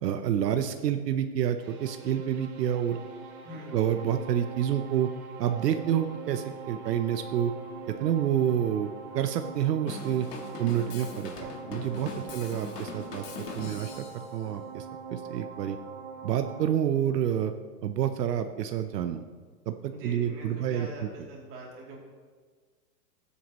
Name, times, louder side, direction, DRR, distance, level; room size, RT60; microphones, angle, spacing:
voice 1, 0.0-3.0 3.7-5.1 5.4-7.5 8.0-10.3 10.6-15.8 16.2-17.5 17.8-19.2 19.7-21.1, right 9 dB, 85° right, 7 dB, 0.8 m, -28 dB
sound 1, 1.6-16.7, right 6 dB, 65° right, 1.7 m, -43 dB
voice 2, 3.4-3.8 12.2-12.5 19.9-22.0, right 1 dB, 25° right, -4 dB, 2.8 m, -43 dB
Drum kit / Drum, 9.9-14.3, left 5 dB, 75° left, 1.7 m, -41 dB
16.5 x 8.4 x 3.0 m, 1.5 s
hypercardioid pair, 155°, 47 cm